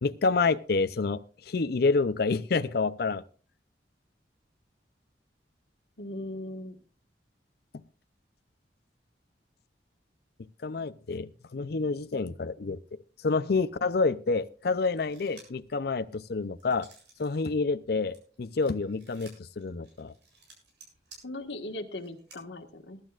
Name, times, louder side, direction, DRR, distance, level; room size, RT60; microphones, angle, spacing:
voice 1, 0.0-3.2 10.6-16.9 17.2-20.1, left 4 dB, 60° left, 12 dB, 0.5 m, -28 dB
voice 2, 6.0-6.8 21.2-23.0, left 1 dB, 85° left, 5 dB, 1.6 m, -39 dB
sound 1, 15.0-15.7 16.1-17.3 17.7-22.4, right 3 dB, 75° right, 7.5 m, -55 dB
21.5 x 12.0 x 2.4 m, 0.40 s
head